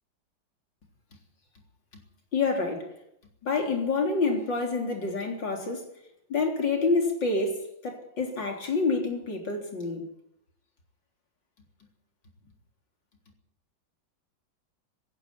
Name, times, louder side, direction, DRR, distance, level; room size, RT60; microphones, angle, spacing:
voice 1, 2.3-2.9 3.4-5.8 6.3-10.1, left 3 dB, 70° left, 4.4 m, -27 dB
16.5 x 16.5 x 9.8 m
omnidirectional pair, 2.1 m